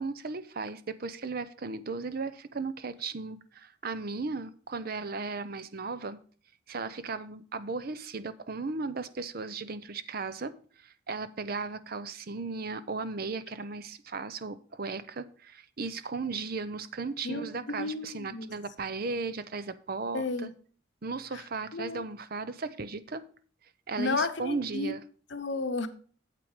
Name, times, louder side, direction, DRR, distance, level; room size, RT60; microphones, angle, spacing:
voice 1, 0.0-6.2 6.7-20.5 21.0-23.2 23.9-25.0, right 4 dB, 50° right, 0.6 m, -36 dB
voice 2, 17.2-18.5 20.1-20.5 21.7-22.0 24.0-24.9 25.3-25.9, left 3 dB, 65° left, 0.9 m, -32 dB
8.5 x 7.6 x 4.9 m
head